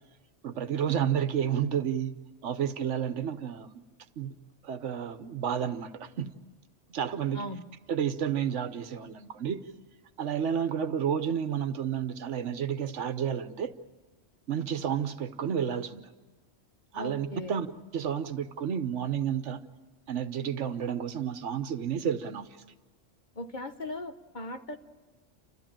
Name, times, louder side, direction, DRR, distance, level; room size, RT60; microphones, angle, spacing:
voice 1, 0.4-2.1 2.4-3.8 4.2-4.4 4.6-6.3 6.9-7.4 7.9-9.6 10.2-13.7 14.5-16.0 16.9-17.7 17.9-19.7 20.1-22.5, right 8 dB, 70° right, 11 dB, 1.2 m, -31 dB
voice 2, 16.9-17.5 23.3-24.8, left 1 dB, 40° left, 7 dB, 1.1 m, -38 dB
29.5 x 14.0 x 8.9 m, 1.3 s
omnidirectional pair, 1.3 m